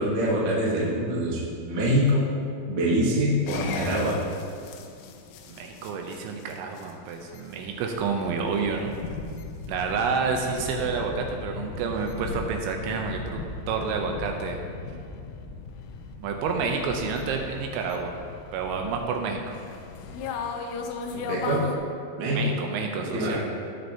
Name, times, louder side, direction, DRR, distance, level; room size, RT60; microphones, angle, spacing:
voice 1, 0.0-2.3 2.7-4.1 21.1-21.6 22.2-22.5 23.1-23.4, equal, 65° right, -6 dB, 1.2 m, -24 dB
sound 1, 3.5-21.8, left 4 dB, 80° left, 3.1 m, -37 dB
voice 2, 5.5-8.9 9.7-14.6 16.2-18.1 18.5-19.6 22.3-23.4, right 5 dB, 80° right, 2 dB, 2.9 m, -29 dB
17.0 x 6.4 x 2.8 m, 2.4 s
omnidirectional pair, 5.7 m